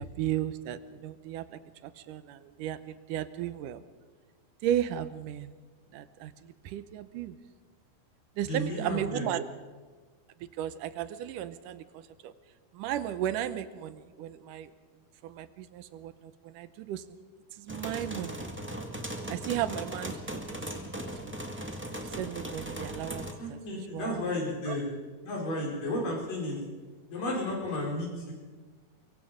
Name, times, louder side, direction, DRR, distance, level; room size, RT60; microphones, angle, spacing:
voice 1, 0.0-3.8 4.6-5.6 5.9-7.4 8.4-9.5 10.4-12.3 12.7-14.7 15.2-17.0 17.5-18.4 19.3-21.3 22.0-24.8, right 11 dB, 80° right, 13 dB, 2.4 m, -35 dB
voice 2, 8.5-9.2 23.4-24.9 25.2-26.6 27.1-28.3, left 1 dB, 80° left, -2 dB, 6.5 m, -33 dB
sound 1, 17.7-23.3, right 1 dB, 5° right, 1.2 m, -38 dB
24.0 x 23.0 x 5.1 m, 1.5 s
omnidirectional pair, 3.8 m